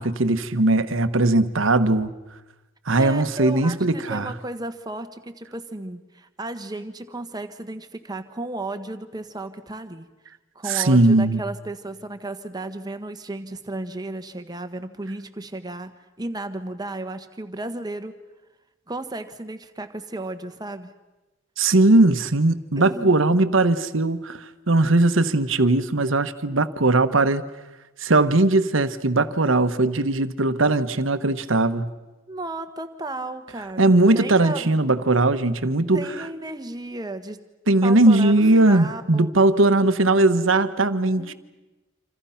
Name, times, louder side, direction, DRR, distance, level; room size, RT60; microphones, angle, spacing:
voice 1, 0.0-2.1 2.9-4.3 10.7-11.4 21.6-27.4 28.0-31.9 33.8-36.1 37.7-41.3, right 2 dB, 70° right, 1.2 m, -19 dB
voice 2, 3.0-10.1 10.5-18.1 18.9-20.9 22.8-23.2 32.3-34.6 35.9-37.4 37.8-39.3 41.2-41.3, right 2 dB, 20° right, 1.4 m, -34 dB
27.0 x 27.0 x 5.8 m
head